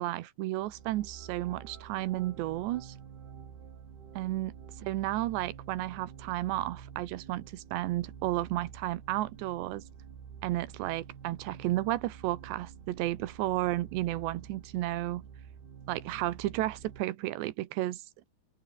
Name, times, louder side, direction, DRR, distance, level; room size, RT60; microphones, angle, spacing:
voice 1, 0.0-2.9 4.1-4.5 4.8-9.8 10.4-15.2 15.9-18.0, right 16 dB, 85° right, 3.3 m, -32 dB
sound 1, 0.6-17.0, right 7 dB, 65° right, 5.6 m, -49 dB
open air
omnidirectional pair, 5.0 m